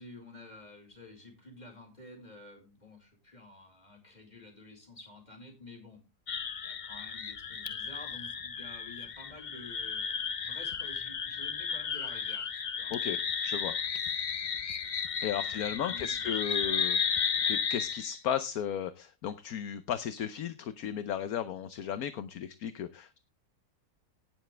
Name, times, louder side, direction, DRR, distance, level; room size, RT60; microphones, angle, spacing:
voice 1, 0.0-6.0 6.6-10.1 10.4-12.9 15.3-16.9, left 2 dB, 25° left, 1 dB, 4.9 m, -51 dB
sound 1, 6.3-18.2, left 6 dB, 80° left, 0.4 m, -34 dB
voice 2, 13.4-13.7 15.2-17.0 17.5-23.2, left 9 dB, 60° left, 12 dB, 1.1 m, -35 dB
18.0 x 7.2 x 3.3 m, 0.28 s
omnidirectional pair, 1.9 m